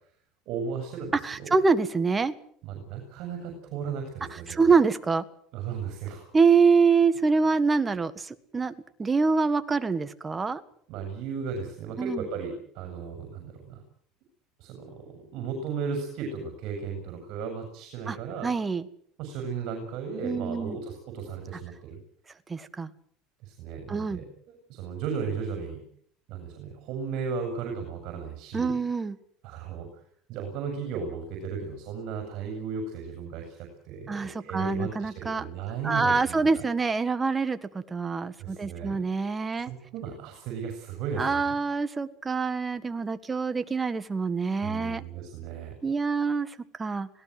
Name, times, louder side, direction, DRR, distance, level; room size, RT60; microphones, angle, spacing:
voice 1, 0.5-1.6 2.6-4.7 5.5-6.3 10.9-13.8 14.6-18.5 19.2-22.0 23.4-25.8 26.3-28.8 29.4-29.9 30.3-36.6 38.4-39.0 39.6-41.6 44.6-45.7, right 6 dB, 60° right, 4 dB, 6.5 m, -35 dB
voice 2, 1.1-2.3 4.5-5.2 6.3-8.7 9.0-10.6 12.0-12.3 18.1-18.2 18.4-18.9 20.2-20.8 22.5-22.9 23.9-24.2 28.5-29.2 34.1-35.5 35.8-39.7 41.2-45.0 45.8-47.1, right 4 dB, 20° right, 11 dB, 1.6 m, -25 dB
25.5 x 18.0 x 7.8 m, 0.63 s
supercardioid pair, 125°, 0 cm